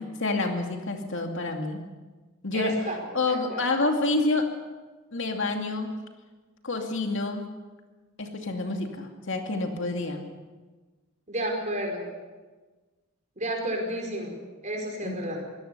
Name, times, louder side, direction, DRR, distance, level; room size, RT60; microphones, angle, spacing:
voice 1, 0.0-1.8 2.4-4.5 5.1-5.9 6.6-7.5 8.2-10.2 15.0-15.2, left 2 dB, 60° left, 3 dB, 2.5 m, -28 dB
voice 2, 2.5-3.6 11.3-12.1 13.4-14.4 14.6-15.5, right 1 dB, 35° right, 2 dB, 4.9 m, -32 dB
23.5 x 17.5 x 6.9 m, 1.3 s
head